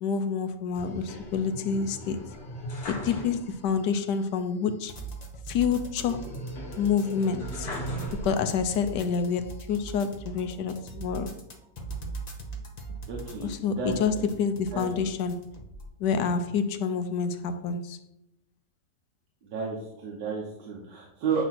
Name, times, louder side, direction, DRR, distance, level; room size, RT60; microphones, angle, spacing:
voice 1, 0.0-2.3 2.9-4.9 5.5-6.3 6.8-7.7 8.2-11.4 13.4-15.5 16.0-18.0, left 6 dB, 85° left, 1.3 m, -28 dB
sound 1, 0.7-3.8 4.1-4.2 6.0-8.7 9.3-10.1, equal, 65° left, 1.8 m, -38 dB
sound 2, 4.9-15.9, right 4 dB, 35° left, 0.8 m, -40 dB
voice 2, 13.1-14.3 14.7-15.0 19.4-21.5, right 5 dB, 90° right, 1.8 m, -32 dB
8.6 x 3.0 x 5.8 m
omnidirectional pair, 1.8 m